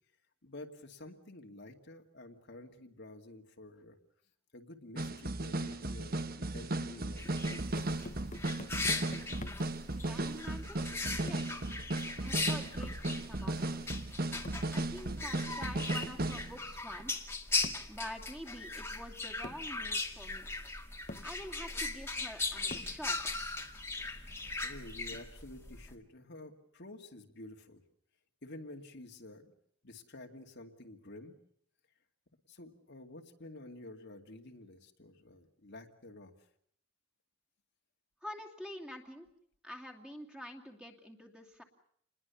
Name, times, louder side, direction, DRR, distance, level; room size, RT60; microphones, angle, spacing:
voice 1, 0.4-4.0 4.5-7.4 24.4-27.8 28.4-29.5 29.8-31.3 32.5-36.3, left 2 dB, 55° left, 3 dB, 2.4 m, -50 dB
sound 1, 4.9-16.5 17.0-17.1, right 2 dB, 45° right, 1.3 m, -36 dB
sound 2, 7.2-9.8 11.3-11.6 12.8-13.1 14.4-14.7 16.0-16.3 17.6-17.9 18.9-19.0 19.4-19.7 20.6-20.7 21.1-21.4 22.7-23.1, left 1 dB, 35° left, 1.4 m, -47 dB
sound 3, 7.2-25.9, left 3 dB, 10° left, 2.1 m, -39 dB
voice 2, 9.9-10.8 11.2-11.7 12.2-13.8 14.7-17.3 17.9-20.5 21.2-23.2 38.2-39.3 39.6-41.6, equal, 5° right, 2 dB, 2.7 m, -47 dB
29.0 x 21.0 x 7.1 m, 0.67 s
head